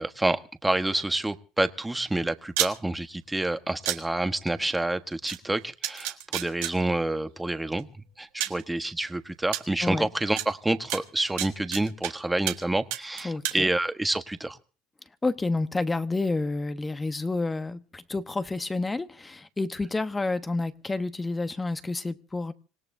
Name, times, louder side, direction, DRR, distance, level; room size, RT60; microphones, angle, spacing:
voice 1, 0.0-7.9 8.2-14.6, right 2 dB, 10° right, 9 dB, 1.3 m, -28 dB
sound 1, 2.5-2.7 3.8-4.0 5.3-5.4 5.8-6.7 7.8-7.9 8.4-8.6 9.5-9.6 10.4-10.5 10.9-12.1 12.5-12.6 12.9-13.6, right 14 dB, 80° right, 1.6 m, -29 dB
voice 2, 13.2-13.7 15.2-22.5, left 3 dB, 15° left, 11 dB, 1.1 m, -29 dB
26.5 x 17.5 x 2.7 m, 0.36 s
supercardioid pair, 90°, 0 cm